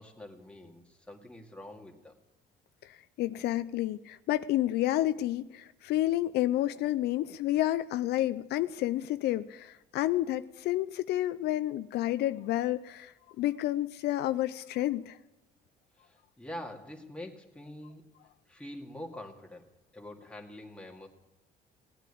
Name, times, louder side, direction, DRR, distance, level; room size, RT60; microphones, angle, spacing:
voice 1, 0.0-2.1 16.0-18.1 18.5-21.1, left 1 dB, 5° left, 1 dB, 2.3 m, -45 dB
voice 2, 2.8-15.2, left 14 dB, 75° left, 12 dB, 0.5 m, -30 dB
18.0 x 9.1 x 8.6 m, 1.0 s
cardioid pair, 110°, 17 cm